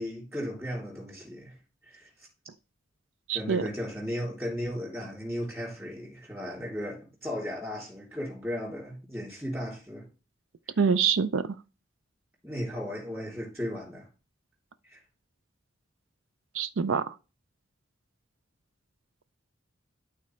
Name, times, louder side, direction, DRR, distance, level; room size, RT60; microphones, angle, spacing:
voice 1, 0.0-1.5 1.9-2.1 3.3-10.1 12.4-14.1 14.8-15.0, equal, 15° right, 3.2 m, -35 dB
voice 2, 3.3-3.6 10.8-11.6 16.5-17.0, right 6 dB, 85° right, 0.5 m, -25 dB
12.0 x 4.1 x 3.2 m
head